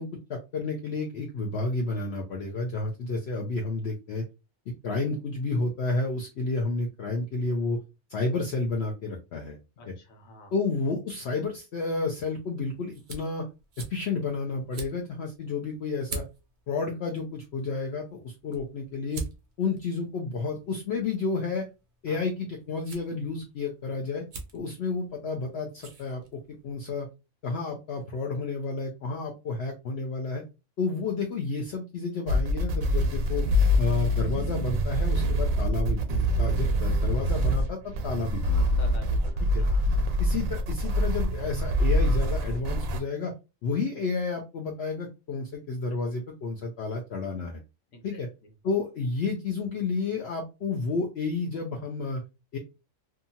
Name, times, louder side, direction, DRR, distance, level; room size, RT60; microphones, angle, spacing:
voice 1, 0.0-4.2 4.7-7.8 8.1-9.6 9.9-10.0 10.5-13.4 13.9-16.2 16.7-19.2 19.6-21.6 22.0-24.2 24.5-27.1 27.4-30.4 30.8-33.4 33.8-38.6 39.4-39.6 40.2-43.3 43.6-47.6 48.0-48.3 48.6-52.2 52.5-52.6, left 3 dB, 60° left, 0 dB, 0.7 m, -31 dB
voice 2, 9.8-10.5 22.1-22.2 24.7-24.8 38.8-39.9 47.9-48.2, left 1 dB, 80° left, 4 dB, 1.2 m, -48 dB
sound 1, 12.1-26.7, right 3 dB, 50° right, 0.6 m, -45 dB
sound 2, 32.3-43.0, equal, 85° right, 1.0 m, -25 dB
2.7 x 2.3 x 2.6 m, 0.27 s
omnidirectional pair, 1.4 m